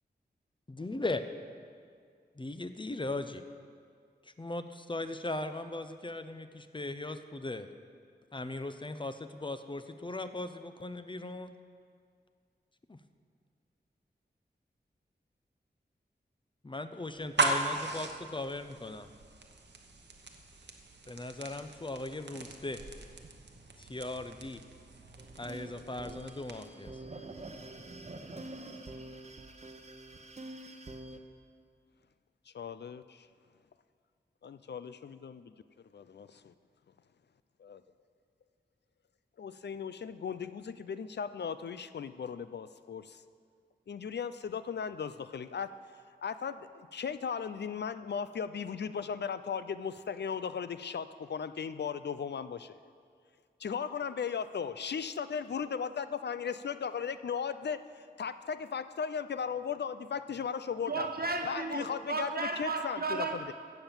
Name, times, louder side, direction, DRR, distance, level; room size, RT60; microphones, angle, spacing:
voice 1, 0.7-1.2 2.4-3.4 4.4-7.7 8.3-11.5 12.9-13.0 16.6-19.1 21.1-22.8 23.8-24.6 25.4-27.0, left 2 dB, 25° left, 9 dB, 0.6 m, -38 dB
sound 1, 17.2-26.9, right 3 dB, 80° right, 1.0 m, -38 dB
sound 2, 25.2-31.2, right 2 dB, 40° right, 0.9 m, -46 dB
voice 2, 32.5-33.3 34.4-35.5 35.9-36.5 37.6-37.8 39.4-43.2 43.9-45.7 46.2-52.7 53.6-61.1 61.5-62.3 62.6-63.5, left 6 dB, 70° left, 12 dB, 0.5 m, -37 dB
voice 3, 60.9-63.5, right 3 dB, 60° right, 4 dB, 1.2 m, -34 dB
16.0 x 5.9 x 7.2 m, 2.1 s
wide cardioid pair, 75°, 18 cm